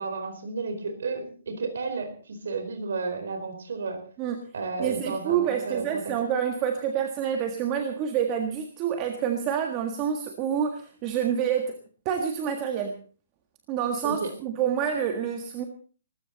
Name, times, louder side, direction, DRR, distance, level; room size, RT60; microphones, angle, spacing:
voice 1, 0.0-4.0 4.5-6.0 14.0-14.3, right 4 dB, 70° right, 6 dB, 4.4 m, -32 dB
voice 2, 4.8-11.7 12.0-13.0 13.7-15.6, right 8 dB, 20° right, 5 dB, 1.6 m, -27 dB
20.0 x 15.0 x 4.1 m, 0.40 s
hypercardioid pair, 175°, 0 cm